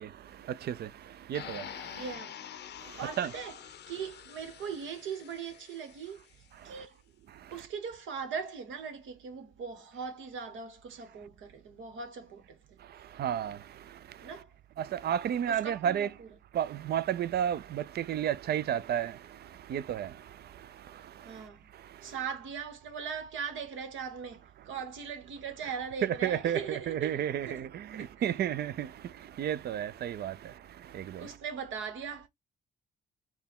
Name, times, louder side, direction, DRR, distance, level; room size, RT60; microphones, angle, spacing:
voice 1, 0.0-2.0 2.8-3.3 6.6-6.8 7.3-7.5 12.9-14.3 14.8-16.1 16.5-21.4 21.7-22.1 26.0-31.4, right 10 dB, 55° right, 0.4 m, -33 dB
sound 1, 1.3-6.3, left 10 dB, 60° left, 0.6 m, -46 dB
voice 2, 1.9-2.4 3.0-3.6 3.9-6.2 6.6-6.9 7.5-12.8 14.2-14.5 15.5-16.3 21.2-21.7 22.0-27.6 28.0-28.4 31.2-32.3, right 6 dB, 75° right, 1.3 m, -40 dB
4.4 x 2.3 x 3.5 m
cardioid pair, 90°, 20 cm